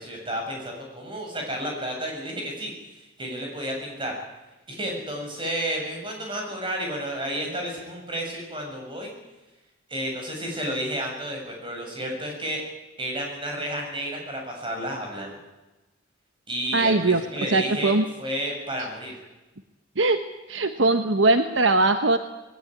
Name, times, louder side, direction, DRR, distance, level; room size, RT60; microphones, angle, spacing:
voice 1, 0.0-4.1 4.7-9.1 9.9-12.6 13.0-15.4 16.5-17.9 18.2-19.1, right 1 dB, 25° right, 1 dB, 7.2 m, -31 dB
voice 2, 16.7-17.2 17.5-18.0 20.0-20.2 20.5-22.2, right 2 dB, 65° right, 8 dB, 1.1 m, -20 dB
21.0 x 17.5 x 10.0 m, 1.1 s
head